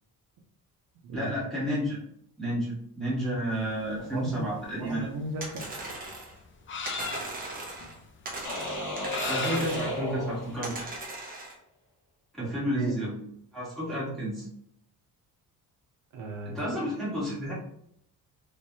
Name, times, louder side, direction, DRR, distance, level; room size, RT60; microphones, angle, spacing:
voice 1, 1.1-2.0 2.4-5.1 9.3-10.8 12.4-13.2 13.5-14.5 16.4-17.5, equal, ahead, -9 dB, 1.5 m, -31 dB
sound 1, 3.6-10.9, left 4 dB, 35° left, 0.5 m, -38 dB
voice 2, 4.0-5.8 12.4-13.0 16.1-16.9, right 2 dB, 70° right, 2 dB, 0.7 m, -37 dB
sound 2, 5.4-6.4 6.9-8.0 8.3-10.0 10.6-11.6, right 2 dB, 25° right, 0.8 m, -38 dB
sound 3, 8.4-11.1, left 1 dB, 60° left, 1.2 m, -35 dB
3.2 x 3.1 x 2.8 m, 0.70 s
cardioid pair, 160°, 34 cm